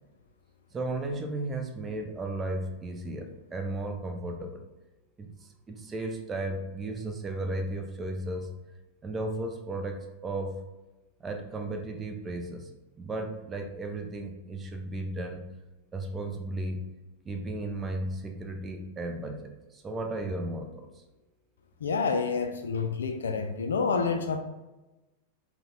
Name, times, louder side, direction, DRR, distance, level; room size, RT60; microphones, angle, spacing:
voice 1, 0.7-4.6 5.2-8.5 9.0-10.6 11.2-12.7 13.0-15.4 15.9-16.8 17.2-21.0, right 2 dB, 20° right, 4 dB, 0.6 m, -35 dB
voice 2, 21.8-24.4, left 5 dB, 65° left, 7 dB, 0.4 m, -28 dB
3.9 x 2.2 x 4.1 m, 1.1 s
figure-of-eight pair, 90°, 0 cm